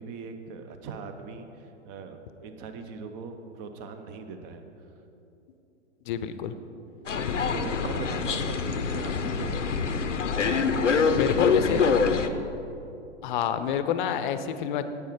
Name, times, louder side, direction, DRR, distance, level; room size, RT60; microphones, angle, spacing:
voice 1, 0.0-4.6 7.5-10.0 10.5-12.6, right 4 dB, 35° right, 7 dB, 0.9 m, -40 dB
voice 2, 6.1-6.5 7.3-7.4 11.1-11.9 13.2-14.8, left 9 dB, 40° left, 11 dB, 0.7 m, -28 dB
sound 1, 7.1-12.3, left 5 dB, 85° left, 0.7 m, -25 dB
10.5 x 8.6 x 4.9 m, 2.9 s
figure-of-eight pair, 105°, 36 cm